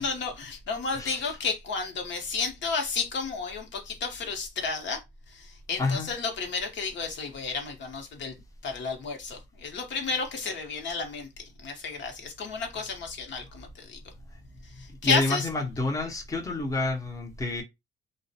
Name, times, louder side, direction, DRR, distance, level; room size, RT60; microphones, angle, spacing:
voice 1, 0.0-8.3 8.6-11.3 11.6-14.0 14.6-15.5, left 4 dB, 65° left, 0.8 m, -32 dB
voice 2, 15.0-17.6, left 2 dB, 15° left, 0.6 m, -28 dB
2.5 x 2.0 x 2.7 m
cardioid pair, 90°, 20 cm